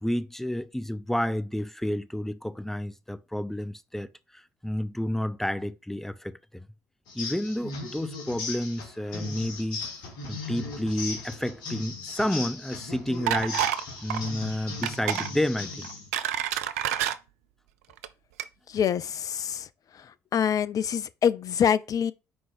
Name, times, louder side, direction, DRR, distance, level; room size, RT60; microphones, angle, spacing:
voice 1, 0.0-6.7 7.1-9.8 10.3-13.6 14.0-15.9, left 1 dB, 5° left, 0.8 m, -30 dB
sound 1, 7.1-16.1, left 3 dB, 70° left, 2.4 m, -38 dB
sound 2, 13.3-13.8 14.1-14.3 14.8-15.3 15.8-17.2 17.9-18.1 18.4-18.5, right 11 dB, 80° right, 0.5 m, -28 dB
voice 2, 18.7-19.7 20.3-22.1, left 8 dB, 50° left, 0.6 m, -25 dB
6.2 x 4.7 x 6.1 m
hypercardioid pair, 50°, 8 cm